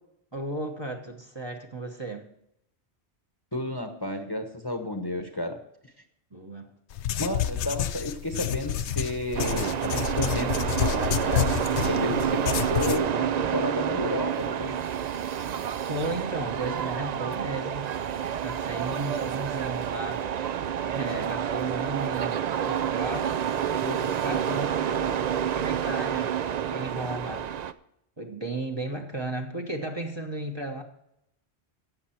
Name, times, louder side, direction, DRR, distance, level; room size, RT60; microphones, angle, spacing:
voice 1, 0.3-2.3 6.3-6.7 15.9-17.9 18.4-20.3 20.8-23.4 23.8-26.4 26.7-27.5 28.2-30.8, right 2 dB, 25° right, 1.0 m, -34 dB
voice 2, 3.5-5.6 7.2-14.8, left 1 dB, 20° left, 1.0 m, -32 dB
sound 1, 6.9-13.0, left 10 dB, 85° left, 0.9 m, -29 dB
sound 2, 9.3-27.7, right 9 dB, 55° right, 0.4 m, -29 dB
sound 3, 11.8-15.9, right 1 dB, 85° right, 2.5 m, -39 dB
16.0 x 6.7 x 4.4 m
omnidirectional pair, 1.1 m